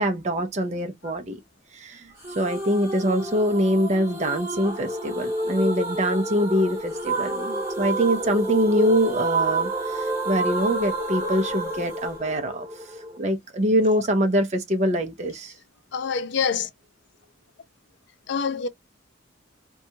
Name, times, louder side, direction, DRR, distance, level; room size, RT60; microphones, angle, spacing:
voice 1, 0.0-1.4 1.7-12.7 13.2-15.5, equal, 35° right, 0.5 m, -24 dB
sound 1, 2.2-13.2, right 2 dB, 15° right, 1.5 m, -29 dB
voice 2, 15.9-16.7 18.3-18.7, left 6 dB, 60° left, 0.4 m, -26 dB
2.7 x 2.2 x 2.7 m
head